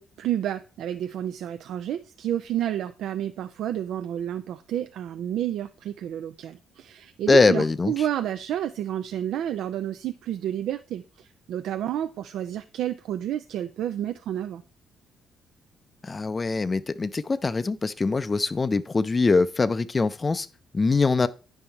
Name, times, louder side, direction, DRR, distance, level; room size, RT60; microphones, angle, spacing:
voice 1, 0.0-14.6, right 11 dB, 80° right, 0.4 m, -30 dB
voice 2, 7.3-7.9 16.0-20.5 20.7-21.3, left 3 dB, 30° left, 0.4 m, -22 dB
9.8 x 5.5 x 4.4 m
cardioid pair, 90°, 0 cm